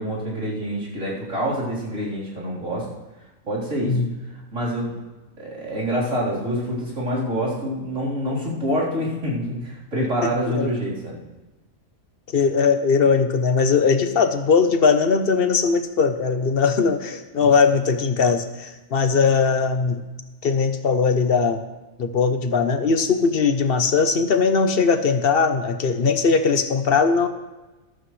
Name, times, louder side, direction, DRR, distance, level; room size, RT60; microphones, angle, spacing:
voice 1, 0.0-2.9 3.4-5.0 5.4-11.2 17.3-17.5, equal, 70° right, -7 dB, 4.3 m, -26 dB
voice 2, 10.2-10.7 12.3-20.0 20.4-21.6 22.0-27.3, left 5 dB, 50° left, 9 dB, 1.0 m, -20 dB
14.5 x 12.5 x 3.2 m, 1.1 s
omnidirectional pair, 1.4 m